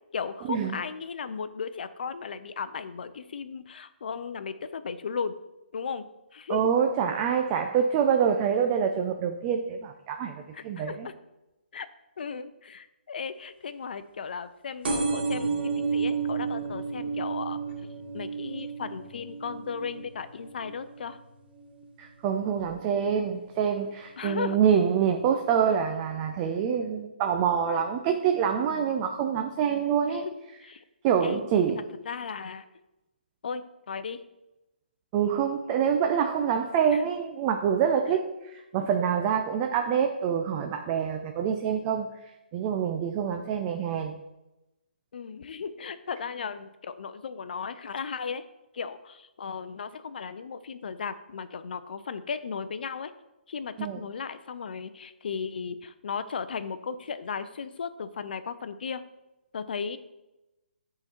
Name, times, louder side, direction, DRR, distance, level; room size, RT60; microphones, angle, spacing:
voice 1, 0.1-5.4 5.7-6.1 6.3-6.7 10.5-11.1 11.7-11.9 12.2-17.6 18.1-21.2 24.2-24.6 28.6-28.9 30.0-30.3 30.6-30.8 31.2-32.7 33.4-34.2 36.9-37.1 45.1-48.4 48.7-53.1 53.5-59.0 59.5-60.0, left 6 dB, 65° left, 12 dB, 0.5 m, -36 dB
voice 2, 6.5-11.1 22.0-30.3 31.0-31.9 35.1-42.1 42.5-44.2 53.8-54.0, right 7 dB, 25° right, 5 dB, 0.4 m, -26 dB
sound 1, 14.8-22.1 22.6-23.0 23.9-24.0 24.2-24.3 24.5-24.6, right 5 dB, 70° right, 1.9 m, -32 dB
8.8 x 3.9 x 4.3 m, 0.97 s
hypercardioid pair, 150°, 6 cm